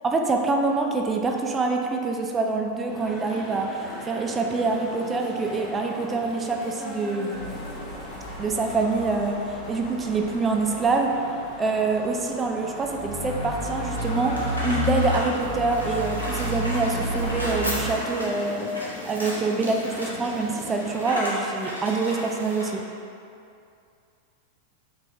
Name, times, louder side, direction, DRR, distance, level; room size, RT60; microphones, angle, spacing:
voice 1, 0.0-7.6 8.4-11.2 11.6-18.7 19.0-22.9, right 3 dB, 20° right, 2 dB, 0.3 m, -26 dB
sound 1, 2.9-21.2, left 1 dB, 10° left, 0.6 m, -40 dB
sound 2, 7.3-17.8, left 1 dB, 55° left, 0.8 m, -32 dB
sound 3, 13.8-22.8, equal, 90° left, 0.6 m, -35 dB
4.4 x 2.7 x 2.6 m, 2.5 s
figure-of-eight pair, 90°, 0 cm